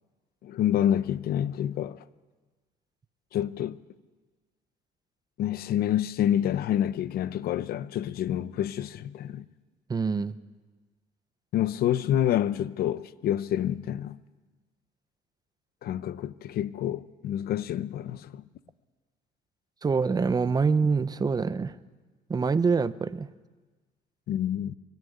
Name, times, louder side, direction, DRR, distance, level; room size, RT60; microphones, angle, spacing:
voice 1, 0.4-2.0 3.3-3.8 5.4-9.4 11.5-14.2 15.8-18.4 24.3-24.7, left 11 dB, 65° left, 0.8 m, -28 dB
voice 2, 9.9-10.3 19.8-21.7 22.3-23.3, right 5 dB, 25° right, 0.8 m, -25 dB
23.0 x 13.5 x 9.4 m
cardioid pair, 110°, 17 cm